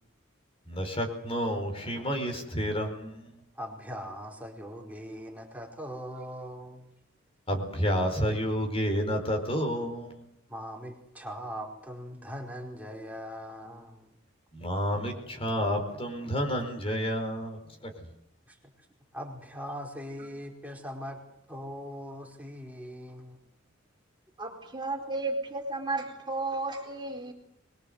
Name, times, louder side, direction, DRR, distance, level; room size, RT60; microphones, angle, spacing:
voice 1, 0.7-3.4 7.5-10.2 14.5-18.1, equal, 30° left, 5 dB, 4.6 m, -30 dB
voice 2, 3.5-6.9 10.5-14.1 18.5-18.6 19.1-21.2 21.5-23.4, equal, 10° right, 1 dB, 4.7 m, -40 dB
voice 3, 24.4-27.3, right 2 dB, 25° right, 2 dB, 4.4 m, -33 dB
24.0 x 22.0 x 8.0 m, 0.75 s
head